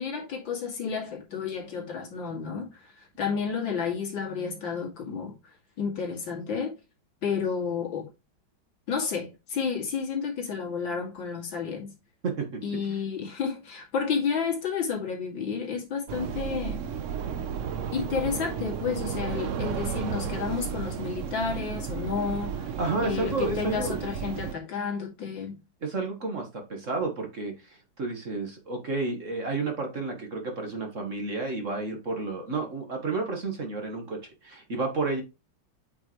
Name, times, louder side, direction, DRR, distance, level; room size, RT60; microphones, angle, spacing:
voice 1, 0.0-5.4 5.8-6.7 7.2-8.1 8.9-11.9 12.6-16.8 17.9-22.7 23.0-25.6, left 6 dB, 70° left, 2.9 m, -31 dB
voice 2, 12.2-12.6 22.8-24.0 25.8-35.2, right 3 dB, 40° right, 1.6 m, -31 dB
sound 1, 16.1-24.5, right 7 dB, 70° right, 0.7 m, -33 dB
8.4 x 4.9 x 3.1 m
omnidirectional pair, 2.1 m